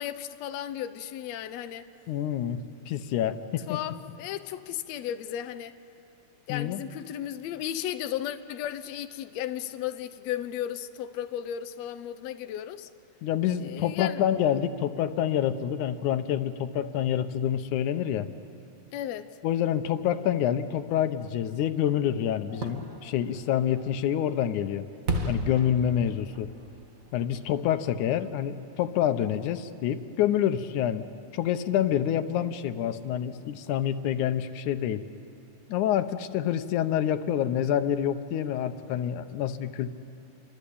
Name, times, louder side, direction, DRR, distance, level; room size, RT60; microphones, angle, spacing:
voice 1, 0.0-1.9 3.7-5.7 6.5-12.9 13.6-14.2 18.9-19.3, left 11 dB, 70° left, 1.9 m, -35 dB
voice 2, 2.1-2.6 2.9-3.8 6.5-6.8 13.2-18.3 19.4-24.9 25.3-26.5 27.1-31.0 31.3-35.0 35.7-39.9, left 10 dB, 90° left, 2.4 m, -27 dB
Fireworks, 22.5-28.3 28.7-28.8, right 1 dB, 35° right, 1.8 m, -36 dB
28.5 x 24.0 x 8.5 m
omnidirectional pair, 3.4 m